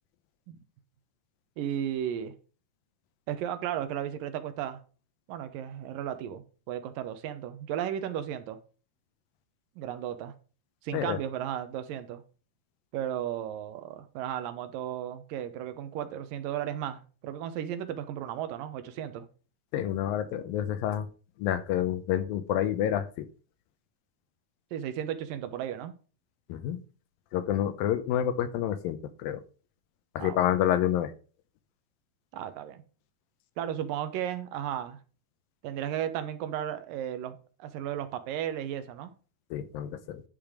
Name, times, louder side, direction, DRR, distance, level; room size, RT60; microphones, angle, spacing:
voice 1, 1.6-2.3 3.3-4.8 5.3-8.6 9.8-10.3 10.8-12.2 12.9-19.3 24.7-25.9 30.2-30.4 32.3-32.8 33.6-35.0 35.6-39.1, right 10 dB, 75° right, 2.4 m, -34 dB
voice 2, 19.7-21.1 21.4-23.3 26.5-26.8 27.3-29.4 30.2-31.1 39.5-40.2, left 11 dB, 80° left, 2.5 m, -28 dB
10.5 x 5.4 x 4.9 m
omnidirectional pair, 4.2 m